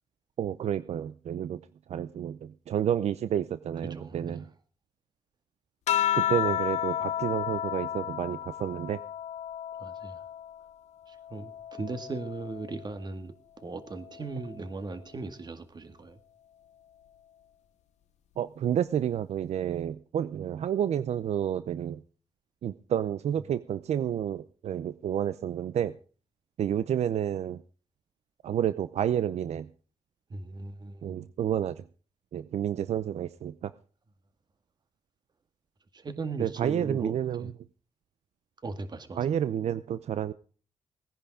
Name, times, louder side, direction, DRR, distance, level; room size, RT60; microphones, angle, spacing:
voice 1, 0.4-1.6 1.9-4.5 6.1-9.0 18.4-22.0 22.6-25.9 26.6-27.6 28.4-29.7 31.0-31.8 32.3-33.7 36.4-37.5 39.2-40.3, right 10 dB, 70° right, 0.6 m, -30 dB
voice 2, 3.8-4.5 6.3-6.6 9.8-10.2 11.1-16.2 30.3-31.2 35.9-37.5 38.6-39.3, right 3 dB, 40° right, 2.0 m, -38 dB
sound 1, 5.9-10.7 11.1-12.9 14.0-14.6, left 11 dB, 90° left, 0.7 m, -32 dB
18.5 x 10.5 x 5.0 m
cardioid pair, 100°, 11 cm